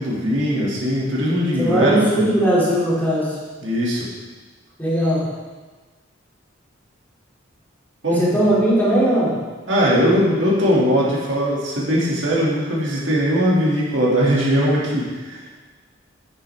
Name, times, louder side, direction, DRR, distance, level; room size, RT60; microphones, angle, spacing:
voice 1, 0.0-2.2 3.6-4.1 8.0-8.3 9.7-15.4, equal, 75° right, -5 dB, 2.2 m, -20 dB
voice 2, 1.6-3.4 4.8-5.3 8.1-9.4, right 1 dB, 10° left, -8 dB, 2.5 m, -19 dB
8.9 x 8.0 x 3.4 m, 1.4 s
head